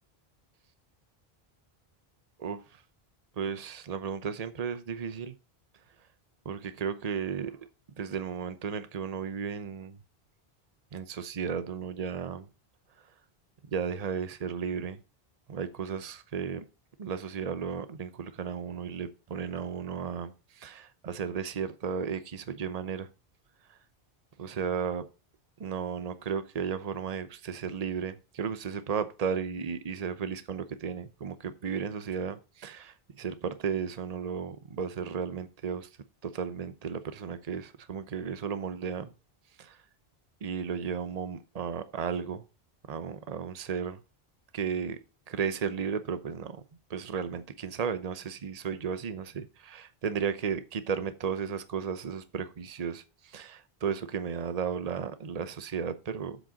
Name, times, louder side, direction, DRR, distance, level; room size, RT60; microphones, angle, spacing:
voice 1, 3.4-5.3 6.5-7.5 8.0-10.0 10.9-12.4 13.7-15.0 15.5-16.6 17.0-20.3 20.6-23.1 24.4-25.0 25.6-32.9 33.2-35.9 36.2-39.1 40.4-42.4 42.9-44.0 44.5-45.0 45.3-46.6 46.9-53.0 53.3-56.4, right 6 dB, 40° right, 0.8 m, -34 dB
7.7 x 6.6 x 5.0 m
omnidirectional pair, 1.0 m